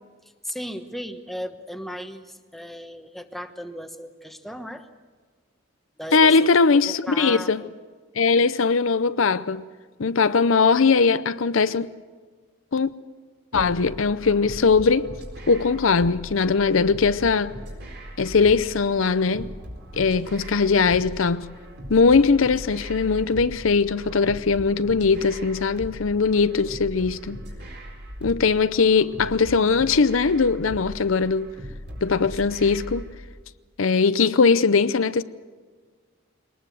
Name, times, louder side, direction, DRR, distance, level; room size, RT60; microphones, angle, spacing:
voice 1, 0.2-4.9 6.0-7.7 8.3-8.6, equal, ahead, 1.1 m, -36 dB
voice 2, 6.1-7.6 8.2-9.6 10.0-11.9 12.7-12.9 13.5-15.1 15.5-17.5 18.2-19.5 20.0-21.5 21.9-27.4 28.2-31.5 32.0-33.1 33.8-35.2, left 4 dB, 75° left, 0.6 m, -20 dB
sound 1, 13.5-33.1, equal, 55° right, 4.2 m, -39 dB
22.5 x 19.5 x 7.7 m
head